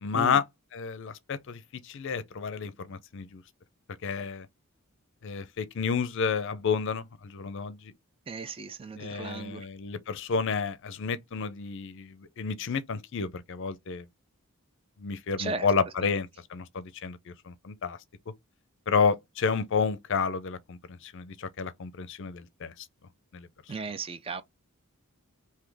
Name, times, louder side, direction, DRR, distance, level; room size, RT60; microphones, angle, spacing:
voice 1, 0.0-0.5 0.7-3.4 4.0-4.5 5.2-7.9 9.0-14.1 15.0-18.0 18.9-22.9 23.3-23.5, left 5 dB, 55° left, 0.5 m, -30 dB
voice 2, 8.3-9.7 15.4-15.7 23.7-24.4, right 3 dB, 25° right, 0.4 m, -35 dB
3.7 x 2.7 x 3.3 m
head